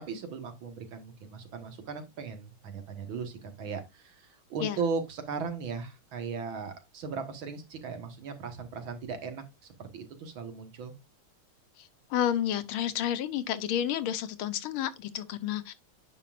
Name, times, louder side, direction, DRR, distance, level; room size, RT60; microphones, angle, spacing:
voice 1, 0.1-9.4 9.8-10.9, right 5 dB, 70° right, 2.2 m, -37 dB
voice 2, 12.1-15.7, left 10 dB, 85° left, 1.7 m, -30 dB
9.6 x 5.4 x 2.5 m
omnidirectional pair, 2.3 m